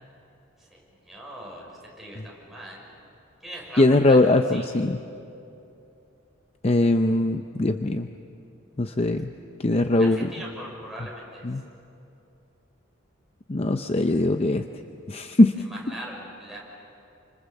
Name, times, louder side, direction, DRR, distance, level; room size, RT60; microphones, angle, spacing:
voice 1, 0.6-2.9 3.4-4.7 10.0-11.5 15.6-16.6, right 1 dB, ahead, -4 dB, 6.2 m, -41 dB
voice 2, 3.8-5.0 6.6-8.1 8.8-9.3 9.6-10.3 11.4-11.6 13.5-14.6 15.1-15.5, left 2 dB, 30° left, 7 dB, 0.6 m, -21 dB
29.0 x 26.0 x 7.2 m, 2.7 s
head